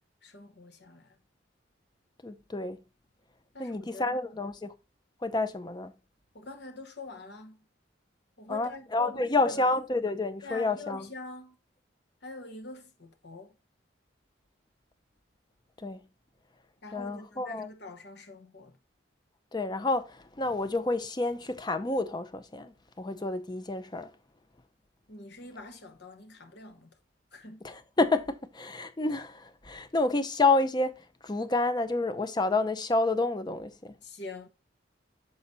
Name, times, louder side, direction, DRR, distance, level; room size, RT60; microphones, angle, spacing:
voice 1, 0.2-1.2 3.5-4.4 6.3-7.6 8.4-9.7 10.4-11.6 12.2-13.5 16.8-18.8 25.1-27.0 27.3-27.7 34.0-34.5, left 3 dB, 60° left, 1.1 m, -45 dB
voice 2, 2.2-2.8 3.6-4.7 5.2-5.9 8.5-11.1 15.8-16.0 16.9-17.7 19.5-24.1 27.6-30.9 31.2-33.9, left 3 dB, 25° left, 0.5 m, -29 dB
6.7 x 4.1 x 4.1 m
head